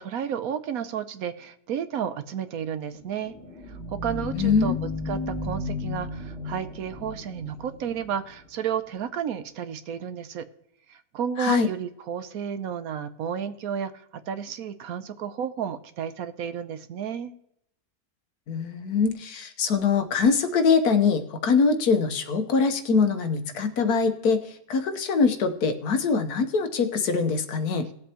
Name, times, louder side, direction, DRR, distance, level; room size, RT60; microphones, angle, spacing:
voice 1, 0.0-3.3 3.7-4.8 5.1-10.5 10.9-17.3, right 8 dB, 75° right, 11 dB, 1.2 m, -32 dB
sound 1, 2.9-8.5, left 3 dB, 20° left, 2.1 m, -34 dB
voice 2, 4.3-4.8 11.4-11.7 18.5-27.9, left 5 dB, 85° left, 8 dB, 1.5 m, -23 dB
19.0 x 7.7 x 2.9 m, 0.76 s
omnidirectional pair, 1.6 m